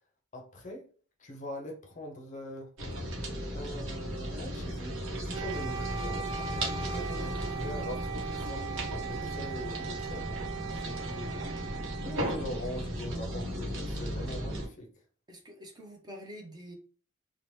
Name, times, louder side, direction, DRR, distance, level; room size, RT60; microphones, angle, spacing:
voice 1, 0.3-0.9 1.2-2.7 3.5-5.0 5.2-6.5 7.2-8.7 8.9-10.4 10.8-11.4 12.0-14.9, left 1 dB, 35° left, 2 dB, 0.5 m, -42 dB
sound 1, 2.8-14.7, equal, 65° right, 0.9 m, -36 dB
Wind instrument woodwind instrument, 5.3-13.3, right 7 dB, 85° right, 0.4 m, -40 dB
voice 2, 6.8-8.0 15.3-16.7, equal, 20° right, 1 dB, 0.5 m, -46 dB
2.8 x 2.0 x 3.0 m, 0.43 s
head